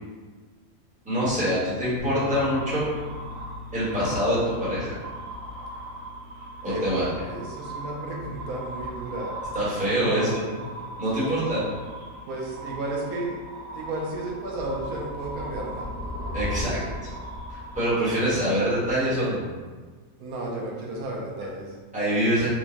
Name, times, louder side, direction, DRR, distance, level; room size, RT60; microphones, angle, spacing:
voice 1, 1.0-2.9 3.7-5.0 6.6-7.1 9.5-10.3 11.0-11.6 16.3-16.8 17.5-19.4 21.9-22.5, equal, 5° right, -10 dB, 1.0 m, -25 dB
sound 1, 2.0-8.2, left 2 dB, 80° left, 1.3 m, -43 dB
sound 2, 2.0-19.1, equal, 55° right, 0.5 m, -38 dB
voice 2, 6.6-9.3 10.0-10.4 12.3-13.4 13.7-15.9 16.6-16.8 20.2-21.8, right 2 dB, 80° right, -1 dB, 1.1 m, -33 dB
4.4 x 2.1 x 2.8 m, 1.4 s
omnidirectional pair, 1.5 m